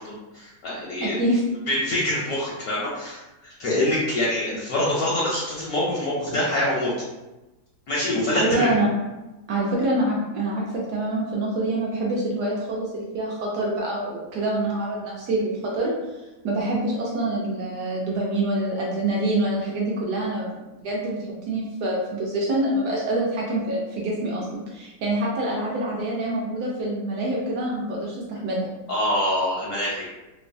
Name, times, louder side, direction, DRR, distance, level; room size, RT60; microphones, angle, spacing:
voice 1, 0.0-1.1 1.7-6.9 7.9-8.8 28.9-30.1, left 1 dB, 70° left, -6 dB, 0.9 m, -25 dB
voice 2, 1.0-1.4 8.3-8.9 9.5-16.2 16.4-21.2 21.5-28.7, right 1 dB, 75° right, -4 dB, 1.0 m, -26 dB
3.1 x 2.1 x 2.5 m, 1.0 s
omnidirectional pair, 2.0 m